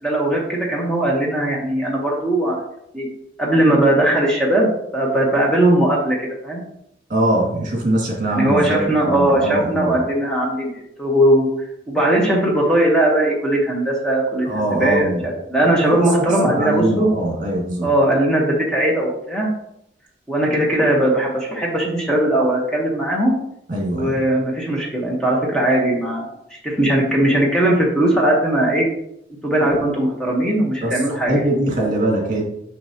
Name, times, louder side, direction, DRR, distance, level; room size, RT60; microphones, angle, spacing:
voice 1, 0.0-2.6 2.9-3.1 3.4-6.2 6.4-6.6 8.3-11.5 11.9-17.1 17.8-19.5 20.3-23.4 23.9-28.9 29.4-31.4, right 1 dB, 5° left, -3 dB, 1.1 m, -19 dB
voice 2, 7.1-10.0 14.4-15.3 15.6-17.9 23.7-24.2 30.8-31.0 31.3-32.4, right 1 dB, 45° right, -1 dB, 2.0 m, -22 dB
6.7 x 6.1 x 2.9 m, 0.76 s
head